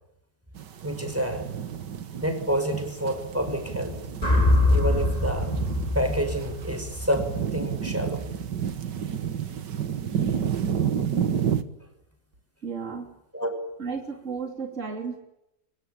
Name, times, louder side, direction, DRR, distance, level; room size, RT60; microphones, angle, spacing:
sound 1, 0.6-11.6, right 8 dB, 90° right, 2.1 m, -31 dB
voice 1, 0.8-1.5 2.2-4.0 4.7-5.5 5.9-8.3 13.3-13.6, right 1 dB, 10° right, 6 dB, 6.4 m, -28 dB
sound 2, 4.2-8.4, left 2 dB, 20° left, 4.2 m, -25 dB
voice 2, 12.6-13.1 13.8-15.2, right 5 dB, 45° right, 3 dB, 3.4 m, -33 dB
25.5 x 24.5 x 8.9 m, 0.86 s
omnidirectional pair, 1.8 m